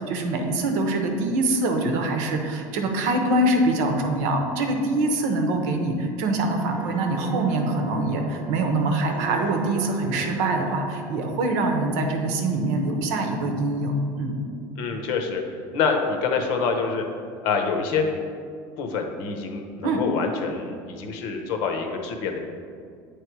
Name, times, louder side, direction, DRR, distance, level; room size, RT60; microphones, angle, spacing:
voice 1, 0.0-14.4 19.8-20.0, right 2 dB, 75° right, 4 dB, 0.9 m, -24 dB
sound 1, 6.3-13.8 14.2-14.4, right 1 dB, 15° right, 0.7 m, -41 dB
voice 2, 14.8-15.4 15.7-17.0 17.4-18.1 18.8-22.4, left 5 dB, 65° left, 4 dB, 0.8 m, -26 dB
8.4 x 3.2 x 4.6 m, 2.2 s
cardioid pair, 150°, 9 cm